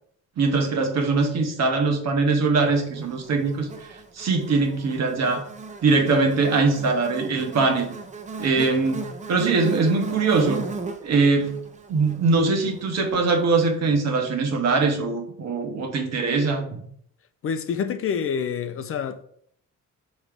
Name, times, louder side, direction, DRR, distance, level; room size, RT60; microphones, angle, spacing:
voice 1, 0.4-3.7 4.1-5.4 5.8-7.8 8.4-10.6 11.0-11.5 11.9-16.8, right 3 dB, 60° right, 1.2 m, -22 dB
Buzz, 3.0-13.4, right 3 dB, 25° right, 0.6 m, -37 dB
voice 2, 17.4-19.2, left 7 dB, 45° left, 0.5 m, -27 dB
6.4 x 3.2 x 4.9 m
cardioid pair, 165°, 31 cm